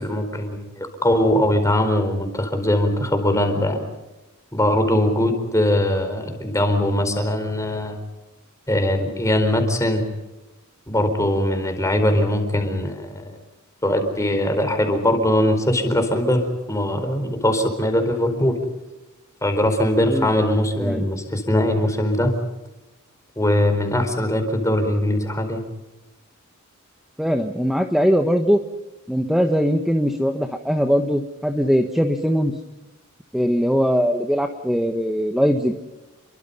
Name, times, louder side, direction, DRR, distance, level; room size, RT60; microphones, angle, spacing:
voice 1, 0.0-3.9 4.5-8.0 8.7-10.0 10.9-13.3 13.8-18.6 19.4-22.3 23.4-25.6, left 1 dB, 15° left, 6 dB, 4.5 m, -21 dB
voice 2, 27.2-28.6 29.1-32.5 33.3-35.7, equal, ahead, 5 dB, 1.3 m, -20 dB
29.5 x 23.5 x 5.6 m, 1.1 s
head